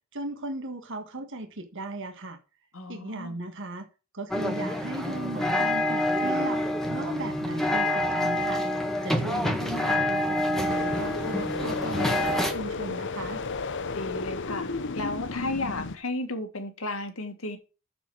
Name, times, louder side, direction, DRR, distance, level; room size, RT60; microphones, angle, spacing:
voice 1, 0.1-2.4 2.9-3.9 4.1-6.6 6.9-8.6 9.0-13.4, right 2 dB, 65° right, 1.7 m, -36 dB
voice 2, 2.7-3.4 13.9-14.7 14.9-17.6, left 2 dB, 80° left, 2.0 m, -33 dB
sound 1, 4.3-12.5, left 1 dB, ahead, 1.4 m, -27 dB
sound 2, 10.7-16.0, left 4 dB, 60° left, 0.9 m, -33 dB
7.1 x 6.8 x 6.0 m
head